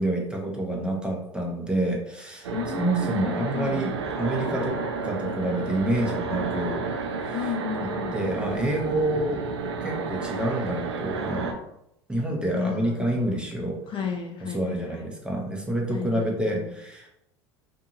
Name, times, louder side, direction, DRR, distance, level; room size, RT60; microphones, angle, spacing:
voice 1, 0.0-2.5 2.8-3.9 4.2-4.8 5.0-6.8 7.2-7.5 8.1-9.4 9.8-11.6 12.1-13.8 14.4-17.1, right 1 dB, 5° right, -1 dB, 0.8 m, -28 dB
sound 1, 2.4-11.5, right 4 dB, 90° right, 0.4 m, -31 dB
voice 2, 2.5-3.9 7.3-8.2 12.5-13.4 13.9-15.1 15.9-16.7, left 7 dB, 40° left, 1 dB, 0.6 m, -34 dB
2.7 x 2.6 x 2.5 m, 0.80 s
hypercardioid pair, 75°, 14 cm